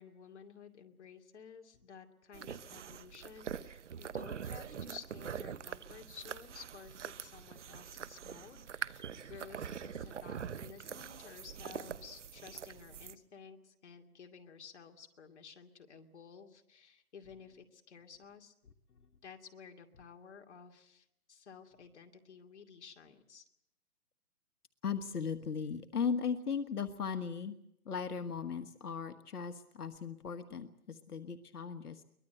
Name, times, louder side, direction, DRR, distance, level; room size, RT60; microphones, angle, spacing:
voice 1, 0.0-18.5 19.2-23.4, left 6 dB, 50° left, 4 dB, 2.6 m, -54 dB
sound 1, 2.3-13.1, right 7 dB, 50° right, 1.0 m, -44 dB
voice 2, 24.8-27.6 27.8-32.0, left 6 dB, 80° left, 8 dB, 1.6 m, -37 dB
23.5 x 20.0 x 7.9 m, 0.78 s
hypercardioid pair, 170°, 44 cm